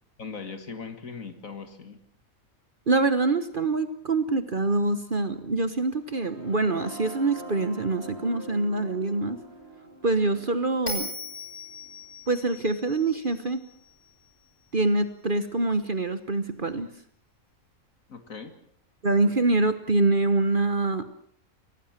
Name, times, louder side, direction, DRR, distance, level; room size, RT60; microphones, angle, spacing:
voice 1, 0.2-2.0 18.1-18.5, left 5 dB, 65° left, 9 dB, 2.3 m, -39 dB
voice 2, 2.9-9.4 10.0-11.1 12.3-13.6 14.7-16.9 19.0-21.0, right 2 dB, 40° right, 11 dB, 1.3 m, -25 dB
sound 1, 5.9-13.8, right 2 dB, 45° left, 7.4 m, -46 dB
Bell, 10.9-14.1, left 1 dB, 15° left, 5.1 m, -38 dB
24.0 x 18.5 x 7.4 m, 0.62 s
omnidirectional pair, 1.5 m